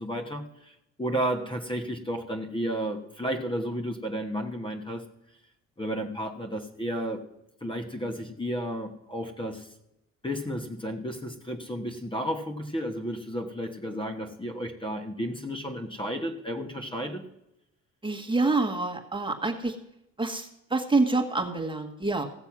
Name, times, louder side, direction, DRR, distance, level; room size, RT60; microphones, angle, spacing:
voice 1, 0.0-5.0 5.8-7.2 7.6-9.7 10.2-17.2, equal, 15° left, 4 dB, 1.4 m, -32 dB
voice 2, 18.0-19.8 20.2-22.3, right 3 dB, 15° right, 3 dB, 1.6 m, -27 dB
16.0 x 6.9 x 6.0 m, 0.85 s
cardioid pair, 90°, 30 cm